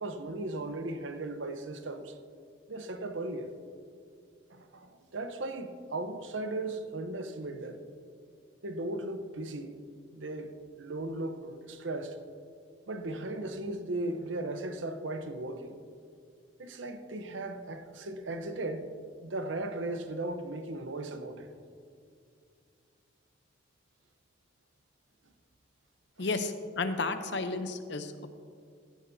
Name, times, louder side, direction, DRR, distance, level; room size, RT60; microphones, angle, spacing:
voice 1, 0.0-2.2 2.7-3.6 4.5-7.8 8.6-9.8 10.1-12.2 12.9-15.8 16.6-18.9 19.2-21.5 26.2-26.3, right 2 dB, 75° right, 0.8 m, -37 dB
voice 2, 26.2-28.1, left 3 dB, 60° left, 0.7 m, -32 dB
15.5 x 10.0 x 2.7 m
head